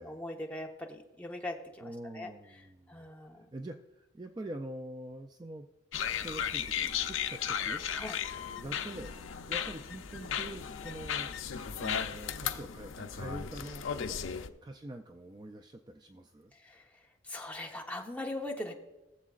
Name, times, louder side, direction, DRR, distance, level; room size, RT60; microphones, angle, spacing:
voice 1, 0.0-1.8 2.1-2.3 2.9-3.5 8.0-8.2 14.0-14.1 16.6-16.8 17.2-18.7, left 1 dB, 10° left, 0 dB, 1.0 m, -40 dB
voice 2, 1.8-3.1 3.5-5.7 6.2-7.8 8.6-9.1 9.5-11.3 11.8-13.9 14.6-16.5, right 1 dB, 20° right, 5 dB, 0.4 m, -44 dB
sound 1, 5.9-14.5, left 8 dB, 90° left, 0.6 m, -35 dB
20.5 x 7.3 x 2.5 m, 1.0 s
head